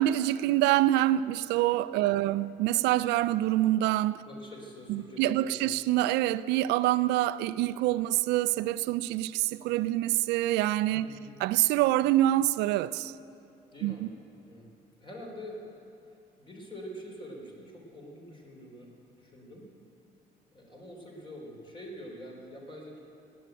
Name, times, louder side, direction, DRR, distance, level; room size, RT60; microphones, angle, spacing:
voice 1, 0.0-4.2 4.9-11.1 11.4-13.1 13.8-13.9, right 14 dB, 90° right, 0.5 m, -26 dB
voice 2, 2.0-2.4 4.2-5.6 11.0-11.4 13.3-13.4 13.7-14.1 14.5-14.7 15.0-19.7 20.5-23.0, equal, 30° left, 3.7 m, -46 dB
18.0 x 8.8 x 9.0 m
cardioid pair, 110°, 17 cm